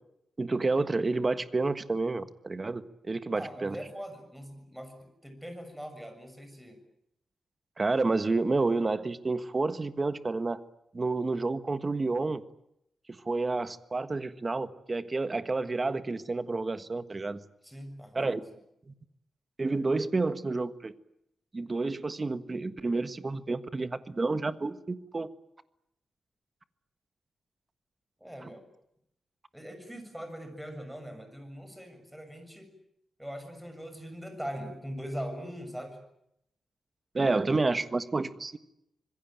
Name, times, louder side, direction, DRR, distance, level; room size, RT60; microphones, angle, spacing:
voice 1, 0.4-3.8 7.8-10.6 10.9-12.4 13.3-17.4 18.1-18.4 19.6-20.9 21.5-25.3 28.4-28.5 37.1-38.6, right 3 dB, 25° right, 12 dB, 1.5 m, -29 dB
voice 2, 3.3-6.8 17.6-18.4 28.2-28.6 29.5-32.7 33.2-36.0, equal, 5° right, 7 dB, 6.9 m, -41 dB
26.0 x 21.5 x 9.1 m, 0.79 s
wide cardioid pair, 130°, 0 cm